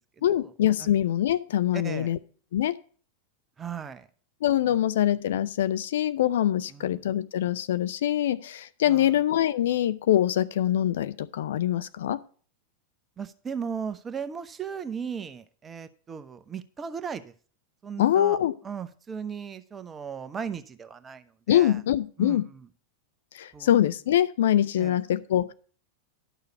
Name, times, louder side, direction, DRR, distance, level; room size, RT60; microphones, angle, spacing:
voice 1, 0.2-2.2 2.5-2.8 4.4-12.2 18.0-18.5 21.5-22.5 23.3-25.5, left 11 dB, 60° left, 14 dB, 0.5 m, -24 dB
voice 2, 1.7-2.1 3.6-4.1 4.6-4.8 6.7-7.0 8.9-9.2 13.2-17.3 17.8-18.4 18.6-21.8 22.2-22.7 23.5-23.8 24.8-25.0, right 7 dB, 20° right, 11 dB, 0.8 m, -37 dB
11.0 x 6.6 x 4.5 m, 0.42 s
figure-of-eight pair, 90°, 0 cm